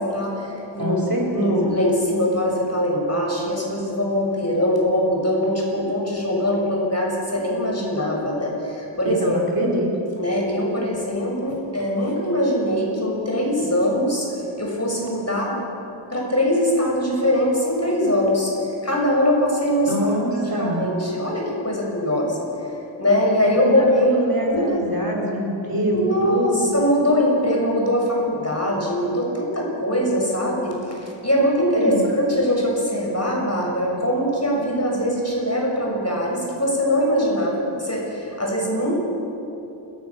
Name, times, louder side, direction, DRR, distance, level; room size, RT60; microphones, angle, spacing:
voice 1, 0.0-0.9 1.3-9.4 10.2-14.3 14.6-15.6 16.1-18.5 18.8-19.9 20.6-22.5 23.0-24.1 24.4-24.8 25.9-38.9, equal, 35° left, -2 dB, 6.8 m, -22 dB
voice 2, 0.8-1.7 9.0-9.9 19.9-20.9 23.4-26.7 31.7-32.0, equal, 50° right, -2 dB, 4.8 m, -24 dB
29.5 x 14.5 x 7.3 m, 2.9 s
wide cardioid pair, 50°, 46 cm